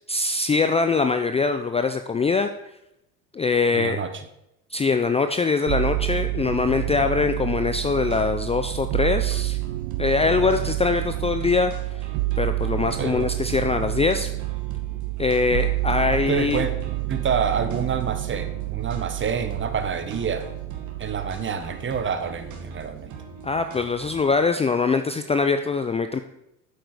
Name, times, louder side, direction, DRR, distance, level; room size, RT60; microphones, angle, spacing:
voice 1, 0.1-2.5 3.3-4.0 4.7-9.6 10.0-11.7 12.4-14.3 15.2-16.6 23.4-26.2, left 4 dB, 15° left, 8 dB, 0.5 m, -23 dB
voice 2, 3.7-4.2 6.9-7.0 13.0-13.3 16.1-16.7 17.1-20.5 21.0-23.1, right 6 dB, 30° right, 10 dB, 1.2 m, -28 dB
sound 1, 5.7-23.1 23.4-24.2, right 20 dB, 65° right, 0.6 m, -29 dB
sound 2, 8.1-24.4, right 5 dB, 45° right, 2.2 m, -43 dB
8.2 x 7.8 x 4.9 m, 0.83 s
hypercardioid pair, 85°, 40 cm